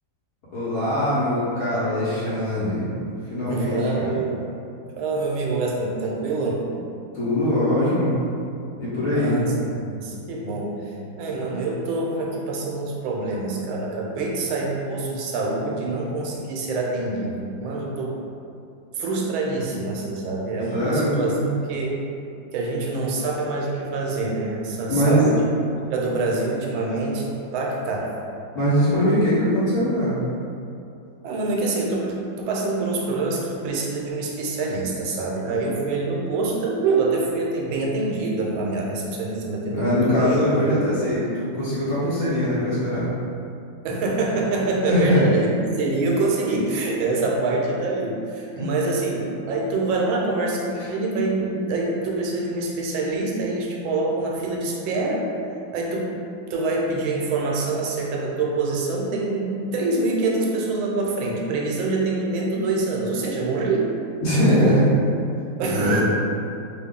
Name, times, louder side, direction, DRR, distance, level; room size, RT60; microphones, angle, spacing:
voice 1, 0.5-2.9 3.3-4.1 7.1-8.1 8.7-9.4 20.7-21.5 24.9-25.3 28.5-30.2 39.6-43.1 44.9-45.2 48.6-48.7 64.2-64.8 65.7-66.0, equal, 55° left, -11 dB, 1.2 m, -22 dB
voice 2, 3.5-4.4 5.0-6.6 9.1-18.2 18.9-22.0 22.5-25.5 25.9-28.1 31.2-40.4 40.6-40.8 43.8-45.5 45.8-55.3 55.7-56.1 56.5-63.9 64.5-64.8 65.6-66.0, right 3 dB, 85° right, -2 dB, 1.4 m, -25 dB
3.3 x 2.3 x 3.6 m, 2.6 s
omnidirectional pair, 2.2 m